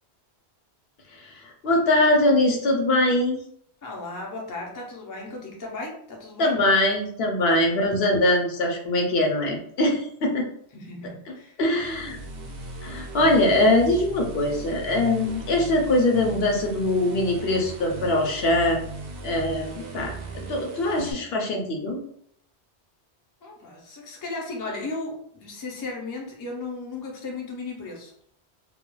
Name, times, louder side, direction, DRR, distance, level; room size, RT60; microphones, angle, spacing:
voice 1, 1.1-3.4 6.4-10.5 11.6-12.2 12.8-18.8 19.2-22.0, left 1 dB, 70° left, 1 dB, 0.8 m, -22 dB
voice 2, 3.8-6.6 7.5-7.8 10.7-11.6 12.1-12.7 23.4-28.1, left 3 dB, 30° left, -1 dB, 0.4 m, -36 dB
sound 1, 11.8-21.1, right 2 dB, 65° right, 0.8 m, -37 dB
2.3 x 2.2 x 3.0 m, 0.65 s
omnidirectional pair, 1.1 m